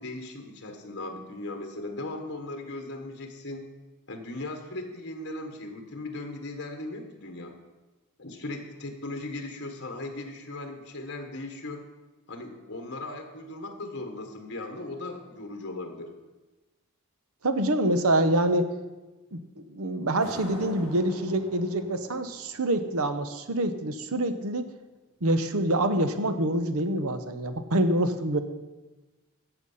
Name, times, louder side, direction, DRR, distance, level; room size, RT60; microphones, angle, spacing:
voice 1, 0.0-3.7 4.1-7.6 8.2-11.8 12.3-16.1, left 2 dB, 55° left, 4 dB, 1.5 m, -38 dB
voice 2, 17.4-18.7 19.3-24.7 25.2-28.4, right 1 dB, 80° right, 10 dB, 1.0 m, -26 dB
sound 1, 20.2-23.5, left 1 dB, ahead, 5.3 m, -44 dB
14.0 x 8.0 x 5.6 m, 1.2 s
head